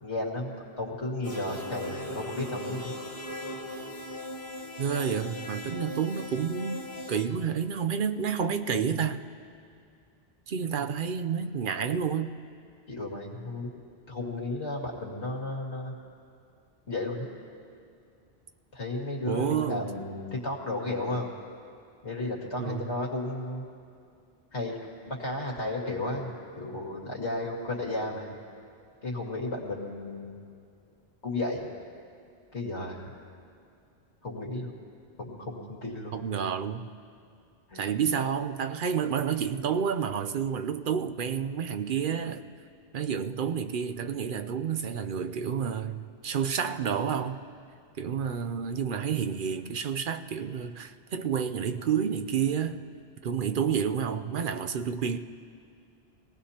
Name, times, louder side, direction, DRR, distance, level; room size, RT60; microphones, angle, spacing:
voice 1, 0.0-2.9 12.9-13.7 14.1-15.9 16.9-17.3 18.7-21.3 22.0-23.6 24.5-24.8 25.1-28.3 29.0-30.3 31.2-31.7 32.5-33.1 34.2-34.7 35.2-36.1 37.7-38.0, left 2 dB, 85° left, -2 dB, 2.5 m, -33 dB
sound 1, 1.2-7.2, left 1 dB, 30° left, 1.3 m, -39 dB
voice 2, 4.8-9.2 10.5-12.3 19.3-19.9 22.6-22.9 36.1-36.9 37.7-42.4 42.9-47.5 48.0-52.8 53.2-55.2, right 7 dB, 55° right, 8 dB, 0.7 m, -30 dB
25.0 x 18.5 x 2.9 m, 2.4 s
omnidirectional pair, 1.1 m